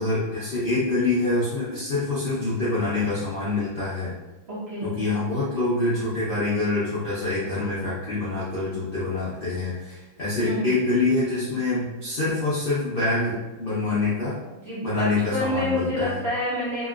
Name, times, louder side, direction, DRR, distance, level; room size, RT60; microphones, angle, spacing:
voice 1, 0.0-4.1 4.8-14.4 14.8-16.2, left 2 dB, 80° left, -9 dB, 0.5 m, -25 dB
voice 2, 4.5-4.9 10.4-10.7 14.6-16.9, left 1 dB, 80° right, -8 dB, 0.5 m, -28 dB
2.9 x 2.9 x 2.4 m, 1.1 s
omnidirectional pair, 2.1 m